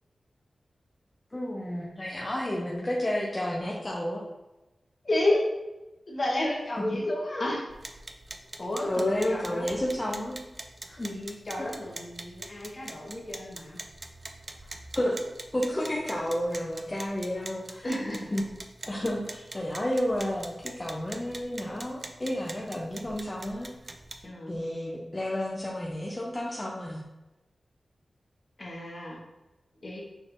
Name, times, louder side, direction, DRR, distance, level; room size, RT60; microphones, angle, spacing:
voice 1, 1.3-4.2 8.9-10.4 10.9-11.0 15.0-15.2 15.5-17.8 18.3-18.5 18.9-23.7 24.5-27.0, left 1 dB, 25° left, -3 dB, 0.6 m, -31 dB
voice 2, 5.0-5.4 6.1-7.6 8.6-9.7 11.0-13.8 17.8-18.3 24.2-24.6 28.6-29.2 29.8-30.0, left 1 dB, 45° left, -2 dB, 1.3 m, -31 dB
sound 1, 7.7-24.3, right 2 dB, 35° right, 0.4 m, -44 dB
6.3 x 3.2 x 2.6 m, 1.0 s
wide cardioid pair, 80°, 0 cm